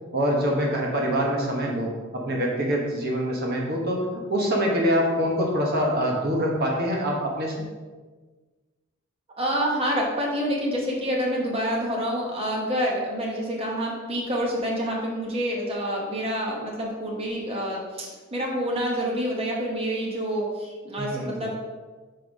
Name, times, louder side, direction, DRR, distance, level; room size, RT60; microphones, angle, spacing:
voice 1, 0.1-7.5 21.0-21.5, equal, 50° right, -1 dB, 1.3 m, -25 dB
voice 2, 9.4-21.5, equal, 30° right, -3 dB, 1.3 m, -27 dB
5.7 x 5.3 x 5.3 m, 1.3 s
head